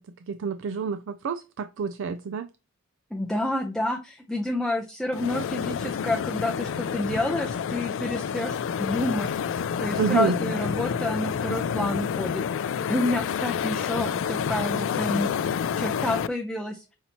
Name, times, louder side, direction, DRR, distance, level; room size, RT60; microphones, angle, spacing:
voice 1, 0.3-2.5 10.0-10.4, right 6 dB, 65° right, 0.4 m, -28 dB
voice 2, 3.1-9.3 9.8-12.4 12.7-16.8, left 1 dB, ahead, 0.5 m, -29 dB
sound 1, 5.1-16.3, left 7 dB, 65° left, 0.3 m, -29 dB
5.5 x 2.8 x 2.9 m
head